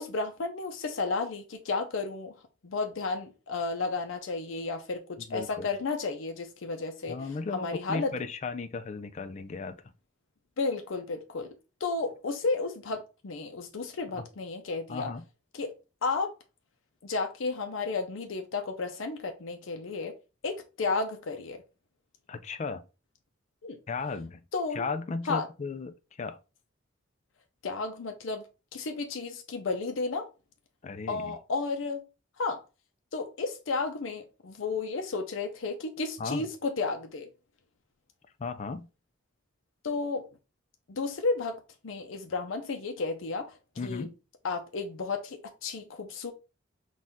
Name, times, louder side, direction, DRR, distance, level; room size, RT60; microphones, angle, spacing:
voice 1, 0.0-2.3 2.6-7.2 7.5-8.1 10.6-11.5 11.8-15.1 15.6-15.7 16.0-16.3 17.0-20.1 20.4-21.6 23.6-23.8 24.5-24.8 25.3-25.5 27.6-28.4 28.7-30.3 31.1-32.0 32.4-32.6 33.1-37.3 39.8-40.2 40.9-41.6 41.8-43.5 43.8-44.1 44.4-46.3, left 3 dB, 85° left, 0.6 m, -32 dB
voice 2, 5.2-5.7 7.1-9.8 14.2-14.3 14.9-15.3 22.3-22.8 23.9-24.4 24.7-26.4 30.8-31.4 36.2-36.5 38.4-38.9 43.8-44.1, left 4 dB, 35° left, 0.4 m, -35 dB
4.3 x 2.4 x 3.6 m
head